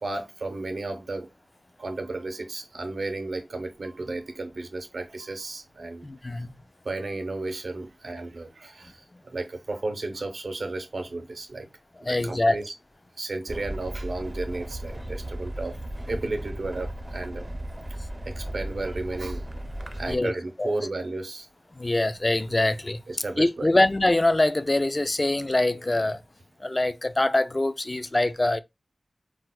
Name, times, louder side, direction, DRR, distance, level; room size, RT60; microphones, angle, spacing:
voice 1, 0.0-1.3 1.8-6.1 6.8-11.7 12.0-12.7 13.2-15.8 16.1-17.5 18.2-19.4 20.0-21.5 23.1-23.7, right 2 dB, 85° right, 0.7 m, -33 dB
voice 2, 6.0-6.5 12.1-12.6 20.1-20.3 20.6-20.7 21.8-23.0 23.4-26.2 26.6-28.6, left 2 dB, 35° left, 0.4 m, -24 dB
sound 1, 13.5-20.2, right 1 dB, 30° right, 0.5 m, -36 dB
4.6 x 2.0 x 2.2 m
wide cardioid pair, 45°, 0 cm